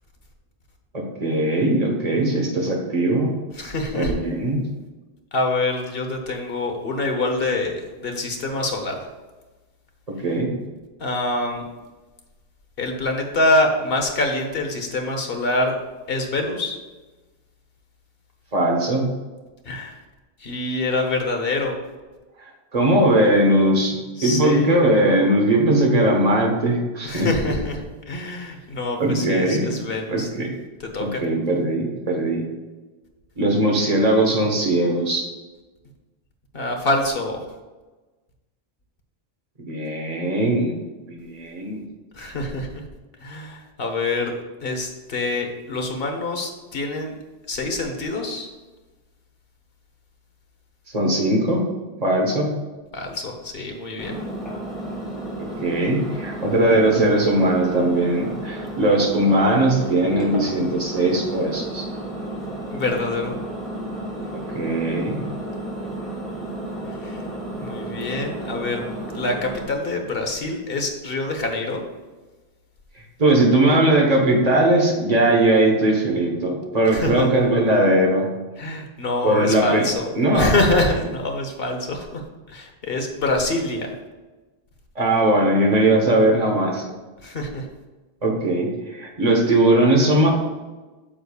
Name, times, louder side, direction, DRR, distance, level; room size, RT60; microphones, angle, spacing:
voice 1, 0.9-3.3 3.9-4.6 10.1-10.5 18.5-19.1 22.7-27.3 29.0-30.5 31.0-32.4 33.4-35.3 39.6-40.8 41.1-41.8 50.9-51.6 52.0-52.5 55.4-61.9 64.3-65.2 73.2-78.3 79.2-79.9 80.1-80.5 84.9-86.8 88.2-90.3, right 1 dB, 40° right, 0 dB, 1.3 m, -19 dB
voice 2, 3.6-4.2 5.3-9.0 11.0-11.6 12.8-15.7 16.1-16.8 19.6-19.9 20.4-21.7 24.2-24.7 27.0-27.8 28.1-30.3 30.8-31.2 36.5-37.4 42.1-42.8 43.2-44.3 44.6-47.1 47.5-48.5 52.9-54.2 62.7-63.4 67.0-67.2 67.6-68.8 69.1-71.8 76.9-77.3 78.6-83.9 87.2-87.7, left 2 dB, 65° left, 3 dB, 1.2 m, -25 dB
Engine, 54.0-69.6, right 1 dB, ahead, 2.4 m, -32 dB
8.9 x 6.9 x 2.4 m, 1.2 s
omnidirectional pair, 1.1 m